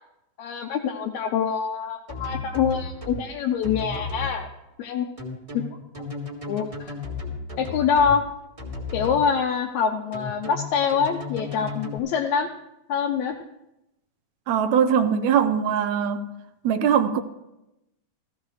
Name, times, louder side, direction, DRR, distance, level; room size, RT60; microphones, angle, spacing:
voice 1, 0.4-4.5 4.8-5.1 5.5-5.6 6.0-6.1 6.5-7.0 7.6-8.2 8.9-12.5 12.9-13.4, left 7 dB, 75° left, 1.9 m, -25 dB
sound 1, 2.1-3.2 3.6-4.3 5.2-8.2 8.6-9.2 10.1-12.0, left 3 dB, 15° right, 1.4 m, -34 dB
voice 2, 14.5-16.3 16.6-17.2, right 8 dB, 75° right, 1.8 m, -21 dB
16.0 x 15.0 x 3.2 m
omnidirectional pair, 3.5 m